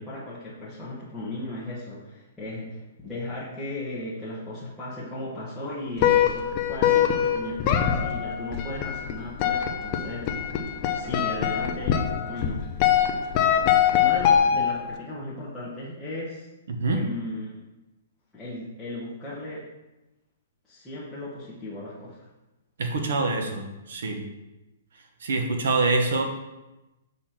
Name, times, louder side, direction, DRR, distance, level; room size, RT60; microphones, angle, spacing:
voice 1, 0.0-10.4 10.9-12.9 13.9-16.5 16.9-17.6 18.3-19.6 20.7-22.2, left 1 dB, ahead, -12 dB, 1.2 m, -36 dB
sound 1, 6.0-15.0, left 9 dB, 30° left, 0.6 m, -23 dB
voice 2, 16.7-17.0 22.8-23.6 23.9-24.2 25.2-26.2, right 3 dB, 75° right, 4 dB, 1.2 m, -25 dB
6.8 x 4.2 x 4.5 m, 1.0 s
hypercardioid pair, 165°, 0 cm